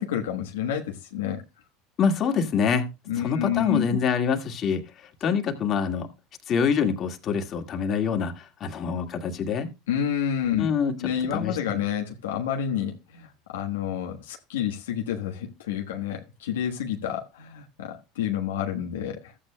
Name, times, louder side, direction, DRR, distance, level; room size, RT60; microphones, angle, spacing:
voice 1, 0.0-1.4 3.1-4.0 9.9-10.7 11.0-19.3, left 9 dB, 90° left, 1.2 m, -29 dB
voice 2, 2.0-2.8 3.2-4.8 5.2-6.1 6.5-9.7 10.6-11.0 11.3-11.8, left 6 dB, 45° left, 1.9 m, -25 dB
14.0 x 8.7 x 2.2 m
hypercardioid pair, 95°, 0 cm